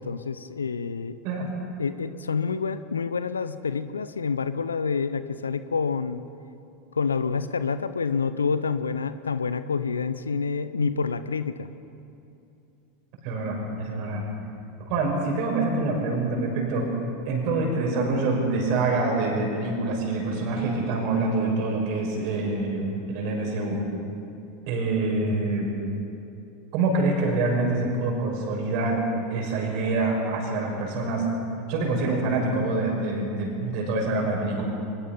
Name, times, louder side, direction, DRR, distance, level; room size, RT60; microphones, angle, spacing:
voice 1, 0.0-1.2 1.8-6.2 6.9-11.7, left 5 dB, 85° left, 13 dB, 0.6 m, -28 dB
voice 2, 13.2-14.2 14.8-16.9 17.2-23.8 24.7-25.8 26.7-29.0 29.3-31.2 31.7-34.7, right 2 dB, 55° right, 1 dB, 6.1 m, -26 dB
23.5 x 21.5 x 5.4 m, 2.7 s
figure-of-eight pair, 85°, 0 cm